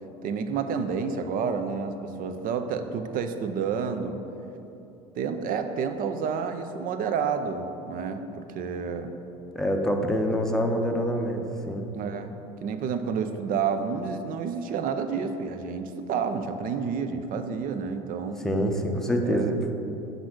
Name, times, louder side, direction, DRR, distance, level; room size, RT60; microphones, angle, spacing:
voice 1, 0.2-4.2 5.2-9.1 11.9-12.3 12.6-18.4 19.2-19.5, right 6 dB, 50° right, 8 dB, 0.6 m, -30 dB
voice 2, 9.5-11.9 18.4-19.6, equal, 5° left, 2 dB, 0.6 m, -26 dB
5.1 x 4.1 x 6.0 m, 2.9 s
hypercardioid pair, 80°, 18 cm